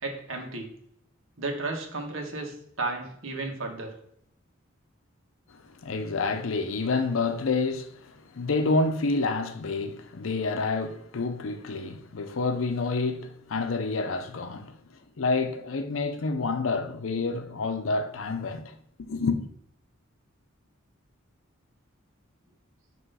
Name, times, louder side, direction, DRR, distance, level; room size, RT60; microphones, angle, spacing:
voice 1, 0.0-0.7 1.4-3.9, right 3 dB, 75° right, 1.4 m, -33 dB
voice 2, 5.7-14.7 15.2-19.4, left 3 dB, 80° left, 0.6 m, -28 dB
5.6 x 3.0 x 5.5 m
head